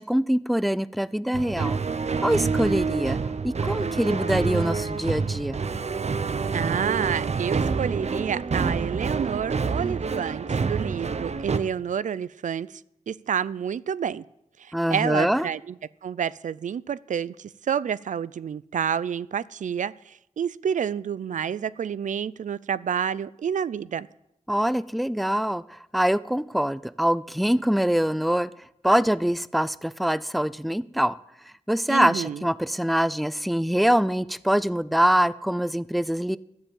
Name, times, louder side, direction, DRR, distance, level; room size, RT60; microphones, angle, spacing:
voice 1, 0.0-1.8 2.2-3.2 3.4-5.6 14.7-15.5 24.5-28.5 28.8-31.2 31.7-36.4, equal, ahead, 17 dB, 0.4 m, -24 dB
sound 1, 1.3-11.6, right 5 dB, 60° right, 0.7 m, -27 dB
voice 2, 6.5-12.7 13.1-14.2 14.6-15.7 16.0-24.1 31.9-32.4, right 8 dB, 85° right, 18 dB, 0.4 m, -29 dB
12.5 x 6.8 x 8.6 m, 0.82 s
wide cardioid pair, 65°, 13 cm